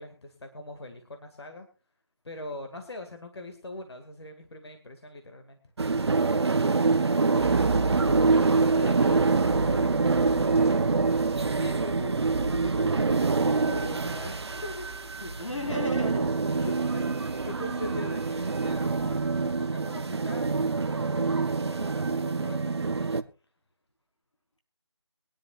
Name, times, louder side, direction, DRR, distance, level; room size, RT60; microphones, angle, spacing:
voice 1, 0.0-1.7 2.2-5.6 11.5-14.9 16.6-23.2, left 2 dB, 60° left, 6 dB, 2.1 m, -42 dB
sound 1, 5.8-23.2, right 4 dB, 60° right, 0.8 m, -25 dB
sound 2, 7.4-19.6, right 2 dB, ahead, 0.6 m, -38 dB
voice 2, 8.4-10.4 15.2-16.7, left 1 dB, 85° left, 4 dB, 4.5 m, -37 dB
22.5 x 10.5 x 2.4 m, 0.31 s
figure-of-eight pair, 165°, 15 cm